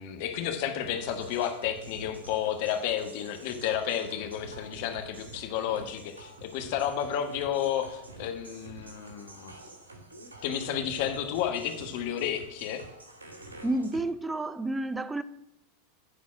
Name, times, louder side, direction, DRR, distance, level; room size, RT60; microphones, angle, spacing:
voice 1, 0.0-9.5 10.4-12.8, left 9 dB, 60° left, 1.2 m, -31 dB
sound 1, 0.8-14.0, right 2 dB, 90° right, 1.4 m, -47 dB
voice 2, 13.6-15.2, right 2 dB, 10° right, 0.5 m, -30 dB
10.0 x 4.3 x 7.3 m
hypercardioid pair, 90°, 0 cm